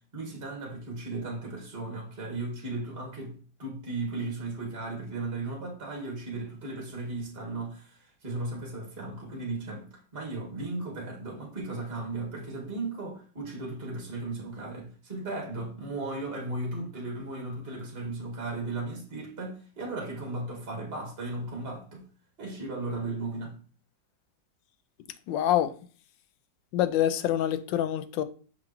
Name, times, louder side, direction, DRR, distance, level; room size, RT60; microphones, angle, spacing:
voice 1, 0.1-22.0 22.4-23.6, right 2 dB, 35° right, 2.1 m, -36 dB
voice 2, 25.3-25.7 26.7-28.2, left 11 dB, 80° left, 1.3 m, -26 dB
6.1 x 5.2 x 3.0 m
omnidirectional pair, 2.0 m